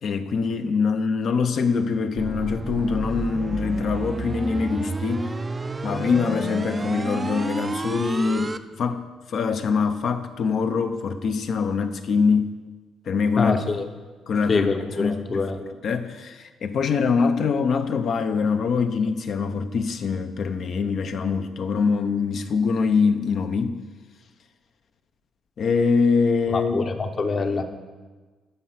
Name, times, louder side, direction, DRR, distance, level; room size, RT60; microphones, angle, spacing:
voice 1, 0.0-5.3 5.8-12.5 13.1-13.6 14.3-14.7 15.0-15.5 15.8-23.8 25.6-26.9, left 5 dB, 60° left, 0.7 m, -24 dB
sound 1, 2.2-8.6, right 3 dB, 25° right, 0.4 m, -30 dB
voice 2, 13.4-13.9 14.5-15.8 26.5-27.6, left 4 dB, 40° left, 1.0 m, -25 dB
12.0 x 5.5 x 5.8 m
cardioid pair, 90°, 0 cm